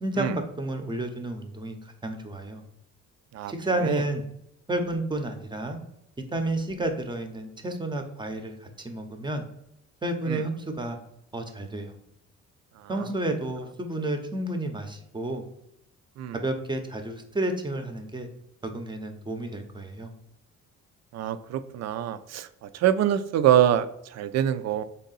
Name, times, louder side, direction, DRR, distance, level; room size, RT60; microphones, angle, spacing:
voice 1, 0.0-2.6 3.5-4.2 4.7-5.8 6.3-9.4 10.0-11.0 11.3-11.9 12.9-15.5 16.4-18.3 18.6-20.1, right 1 dB, 15° right, 5 dB, 0.6 m, -31 dB
voice 2, 21.1-24.8, right 10 dB, 60° right, 12 dB, 0.4 m, -25 dB
3.5 x 2.7 x 4.0 m, 0.80 s
cardioid pair, 90°, 30 cm